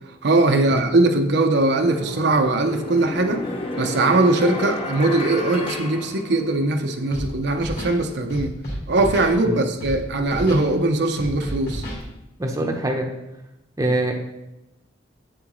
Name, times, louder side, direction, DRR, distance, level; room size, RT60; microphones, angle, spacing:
voice 1, 0.2-3.4 3.8-8.5 8.9-11.8, right 2 dB, 60° right, 5 dB, 0.6 m, -20 dB
sound 1, 1.7-6.9, left 2 dB, 30° left, 0.8 m, -32 dB
Scratching (performance technique), 7.1-7.3 7.6-8.0 8.3-9.3 9.8-10.0 10.3-10.6 11.2-12.0, equal, 50° left, 2.5 m, -31 dB
voice 2, 12.4-13.1 13.8-14.1, right 1 dB, 15° right, 2 dB, 0.7 m, -23 dB
8.2 x 7.5 x 3.0 m, 0.94 s
head